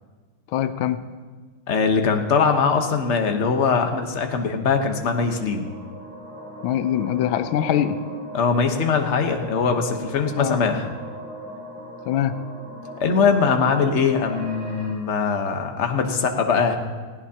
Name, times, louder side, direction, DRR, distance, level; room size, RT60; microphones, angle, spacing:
voice 1, 0.5-1.0 6.6-8.0 10.4-10.6 12.1-12.4, left 10 dB, 75° left, 12 dB, 1.4 m, -23 dB
voice 2, 1.7-5.6 8.3-10.9 13.0-16.8, left 5 dB, 45° left, 5 dB, 1.0 m, -21 dB
sound 1, 4.2-14.9, equal, 5° right, 5.1 m, -39 dB
19.5 x 16.0 x 2.8 m, 1.4 s
omnidirectional pair, 2.4 m